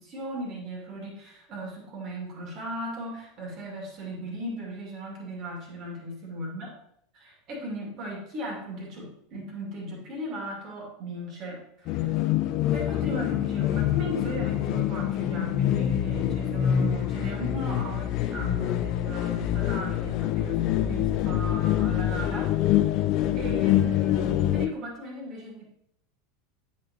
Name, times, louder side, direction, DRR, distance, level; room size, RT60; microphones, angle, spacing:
voice 1, 0.0-6.7 7.1-12.2 12.7-22.6 23.3-25.6, right 1 dB, 40° right, -1 dB, 2.3 m, -37 dB
sound 1, 11.9-24.7, left 11 dB, 45° left, 0.4 m, -25 dB
10.0 x 4.4 x 2.9 m, 0.74 s
figure-of-eight pair, 80°, 0 cm